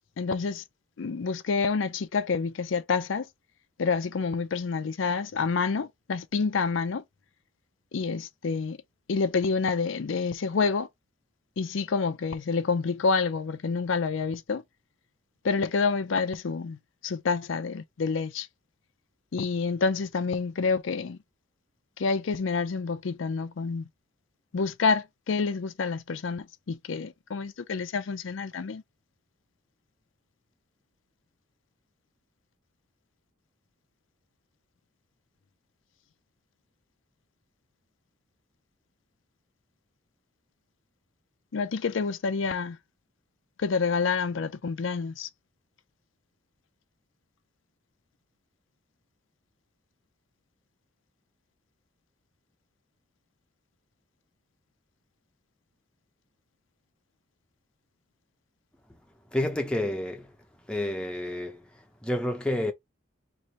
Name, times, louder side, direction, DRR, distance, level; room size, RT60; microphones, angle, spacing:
voice 1, 0.2-0.6 1.0-3.3 3.8-7.0 7.9-8.8 9.1-10.9 11.6-14.6 15.4-16.8 17.0-18.5 19.3-21.2 22.0-23.8 24.5-28.8 41.5-42.8 43.6-45.3, left 4 dB, 80° left, 0.5 m, -28 dB
voice 2, 59.3-60.3 60.7-61.6 62.0-62.7, left 1 dB, 5° left, 0.7 m, -29 dB
3.2 x 2.6 x 4.1 m
head